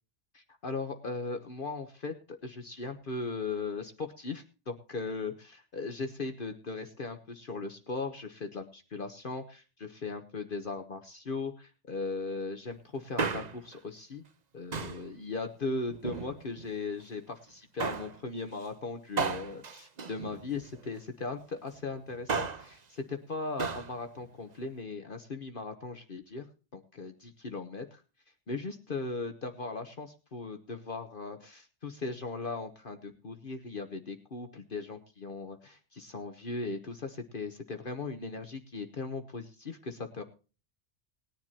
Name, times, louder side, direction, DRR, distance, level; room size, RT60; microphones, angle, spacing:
voice 1, 0.3-14.2 14.5-26.5 26.7-28.0 28.5-40.2, left 3 dB, 50° left, 6 dB, 1.2 m, -38 dB
Male speech man speaking, 13.0-13.8 14.7-15.1 15.9-16.7 17.8-18.2 19.2-20.8 22.1-22.7 23.6-23.9 24.2-24.3, right 5 dB, 40° right, 0.9 m, -34 dB
20.0 x 10.5 x 2.9 m, 0.34 s
omnidirectional pair, 1.2 m